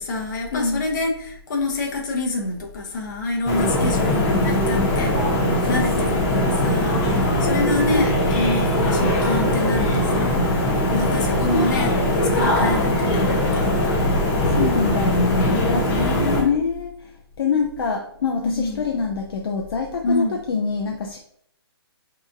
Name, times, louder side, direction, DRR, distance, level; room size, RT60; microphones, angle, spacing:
voice 1, 0.0-5.1 5.7-10.4 10.9-14.0 15.5-16.6 18.4-18.9 20.0-20.4, left 2 dB, 45° left, 1 dB, 0.9 m, -27 dB
voice 2, 0.5-0.8 5.6-6.3 10.3-10.4 14.5-15.9 16.4-21.2, left 5 dB, 60° left, 1 dB, 0.5 m, -25 dB
sound 1, 3.5-16.4, left 1 dB, 25° left, 0.7 m, -20 dB
4.8 x 2.9 x 2.5 m, 0.68 s
hypercardioid pair, 155°, 14 cm